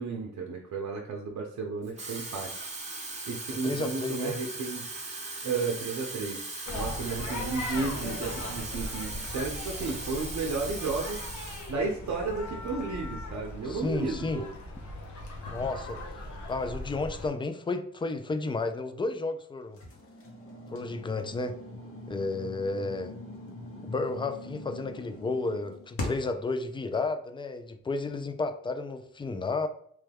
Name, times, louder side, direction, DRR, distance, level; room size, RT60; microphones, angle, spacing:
voice 1, 0.0-2.8 3.3-5.0 5.4-11.3 11.7-14.5, right 4 dB, 70° right, 0 dB, 0.6 m, -33 dB
Water tap faucet / Fill (with liquid), 1.8-11.7 12.1-12.4, right 2 dB, 25° right, 0.7 m, -39 dB
voice 2, 3.6-4.3 13.6-14.4 15.5-16.0 16.5-19.8 20.7-21.5 22.1-23.1 23.8-29.7, left 3 dB, 15° left, 8 dB, 0.3 m, -32 dB
sound 1, 6.7-17.3, left 2 dB, 85° left, 0.8 m, -39 dB
sound 2, 19.8-26.4, left 1 dB, 50° left, 0.9 m, -41 dB
3.1 x 2.2 x 3.4 m, 0.63 s
cardioid pair, 85°, 29 cm